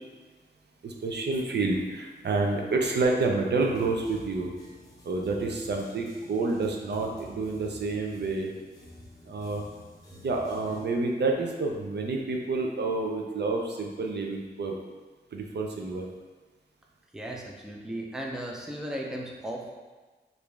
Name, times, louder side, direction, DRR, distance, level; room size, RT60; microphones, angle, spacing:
voice 1, 0.8-4.5 5.0-8.5 9.2-9.7 10.2-14.7 15.3-16.1, right 3 dB, 70° right, 1 dB, 0.6 m, -29 dB
sound 1, 3.5-10.8, equal, 20° left, 0.8 m, -49 dB
voice 2, 17.1-19.7, right 1 dB, 5° right, -1 dB, 0.5 m, -36 dB
5.0 x 2.6 x 3.3 m, 1.3 s
wide cardioid pair, 130°, 18 cm